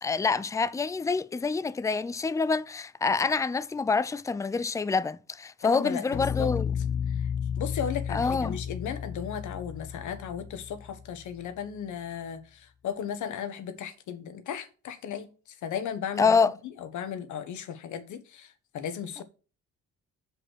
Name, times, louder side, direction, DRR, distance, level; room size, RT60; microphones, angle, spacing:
voice 1, 0.0-6.7 8.1-8.6 16.2-16.5, left 4 dB, 10° left, 0.4 m, -26 dB
voice 2, 5.6-6.5 7.1-7.3 7.6-16.4 16.8-19.2, left 8 dB, 75° left, 1.2 m, -36 dB
sound 1, 6.1-11.4, left 7 dB, 45° left, 0.7 m, -33 dB
6.1 x 5.1 x 6.3 m
cardioid pair, 90°, 30 cm